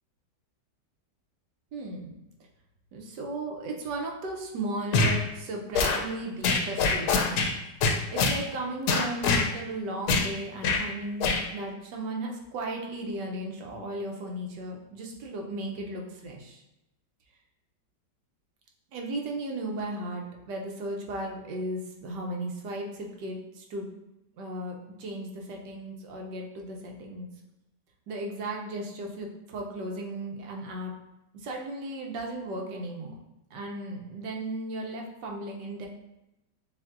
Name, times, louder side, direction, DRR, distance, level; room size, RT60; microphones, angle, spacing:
voice 1, 1.7-2.1 2.9-7.4 8.1-16.6 18.9-23.9 24.4-27.3 28.1-30.9 31.3-33.1 33.5-35.9, right 1 dB, 75° right, 0 dB, 1.4 m, -35 dB
sound 1, 4.9-5.2 5.7-6.0 6.4-7.5 7.8-8.4 8.9-9.5 10.1-10.3 10.6-10.8 11.2-11.4, left 4 dB, 75° left, 1.1 m, -24 dB
6.9 x 2.6 x 2.5 m, 0.92 s
omnidirectional pair, 1.9 m